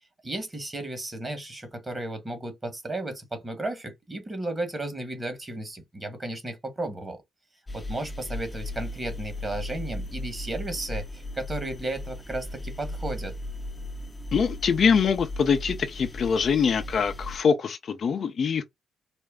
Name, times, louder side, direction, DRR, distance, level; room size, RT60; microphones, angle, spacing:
voice 1, 0.2-7.2 7.7-13.4, right 2 dB, 20° right, 1.7 m, -34 dB
sound 1, 7.7-17.4, left 1 dB, 20° left, 0.9 m, -36 dB
voice 2, 14.3-18.6, left 6 dB, 50° left, 0.7 m, -24 dB
4.3 x 2.1 x 3.6 m
cardioid pair, 90°, 0 cm